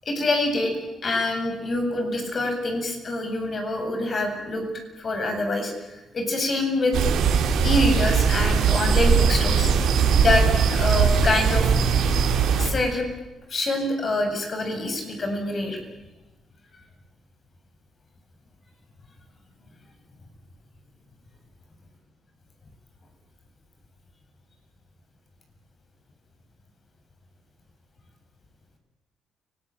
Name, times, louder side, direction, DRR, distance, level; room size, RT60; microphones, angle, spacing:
voice 1, 0.0-4.7 5.0-7.0 7.6-9.7 10.1-11.7 12.6-13.1 13.5-15.8, left 2 dB, 40° left, 5 dB, 7.9 m, -26 dB
sound 1, 6.9-12.7, right 6 dB, 75° right, 4.3 m, -20 dB
29.5 x 20.0 x 9.1 m, 1.1 s
cardioid pair, 90°, 0 cm